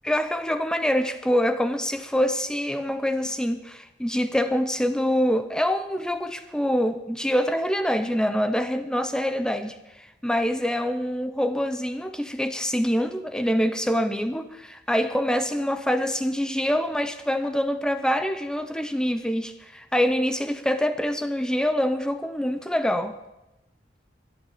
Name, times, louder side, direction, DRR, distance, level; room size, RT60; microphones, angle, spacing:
voice 1, 0.0-23.2, equal, 5° left, 0.6 m, -25 dB
13.0 x 11.0 x 8.6 m
head